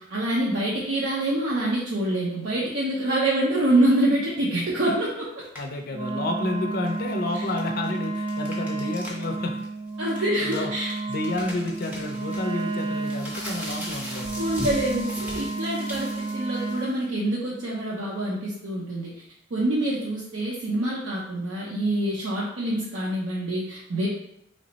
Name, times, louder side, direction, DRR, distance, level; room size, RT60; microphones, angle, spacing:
voice 1, 0.1-5.3 10.0-10.9 14.4-19.1 19.5-24.1, right 1 dB, 75° right, -5 dB, 0.6 m, -26 dB
sound 1, 5.4-5.8 6.7-9.3 9.6-9.7 10.1-17.0, equal, 10° right, 0.7 m, -38 dB
voice 2, 5.5-9.7 10.2-10.7 11.1-14.4, left 2 dB, 55° left, 4 dB, 0.4 m, -31 dB
Wind instrument woodwind instrument, 5.9-16.9, right 3 dB, 25° right, 0.3 m, -31 dB
3.1 x 2.0 x 3.9 m, 0.78 s
head